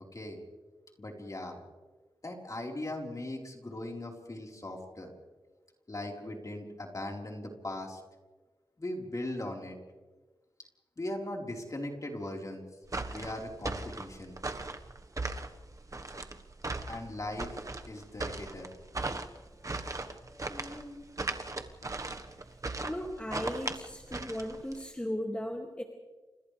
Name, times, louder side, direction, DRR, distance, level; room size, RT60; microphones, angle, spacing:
voice 1, 1.0-1.6 2.2-5.1 5.9-8.0 8.8-9.8 11.0-12.6 13.0-14.3 16.9-17.6 17.8-18.7, left 1 dB, 40° left, 0 dB, 4.5 m, -39 dB
sound 1, 12.9-24.8, right 2 dB, 40° right, 1.4 m, -38 dB
voice 2, 19.5-19.9 20.1-21.1 22.8-25.8, equal, 15° left, 1 dB, 2.3 m, -38 dB
29.5 x 28.0 x 3.4 m, 1.3 s
wide cardioid pair, 75°, 9 cm